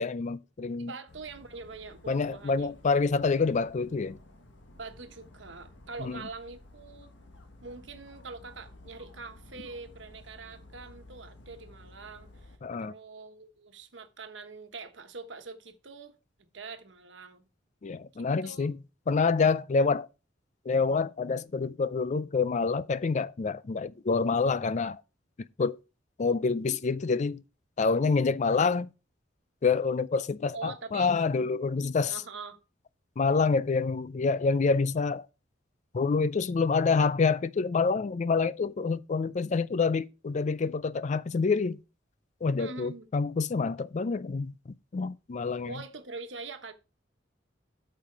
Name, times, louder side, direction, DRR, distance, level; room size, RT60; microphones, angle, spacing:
voice 1, 0.0-0.9 2.1-4.2 6.0-6.2 12.6-12.9 17.8-18.7 19.1-20.1 20.7-25.0 25.6-25.8 26.2-27.4 27.8-28.9 29.6-32.2 33.2-35.3 35.9-41.8 42.4-44.5 44.9-45.7, left 4 dB, 40° left, 0.4 m, -27 dB
voice 2, 0.8-2.7 4.8-7.1 7.6-17.5 18.4-18.7 19.8-20.0 30.5-31.2 32.1-32.6 42.6-43.1 45.7-46.7, right 4 dB, 75° right, 1.2 m, -44 dB
Dog, 1.1-12.6, left 1 dB, 75° left, 1.6 m, -53 dB
8.7 x 5.7 x 4.5 m
head